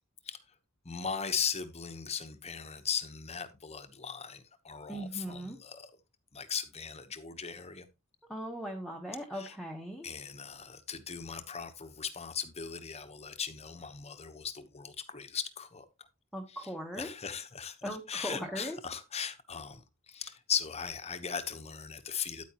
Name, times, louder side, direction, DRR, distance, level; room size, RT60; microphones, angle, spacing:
voice 1, 0.8-5.9 6.3-7.9 9.3-9.6 10.0-16.1 16.5-16.7 17.0-22.4, left 7 dB, 30° left, 1.1 m, -38 dB
voice 2, 4.9-5.6 8.3-10.1 16.3-17.1 17.8-18.8, equal, ahead, 1.3 m, -39 dB
9.3 x 9.1 x 3.0 m
head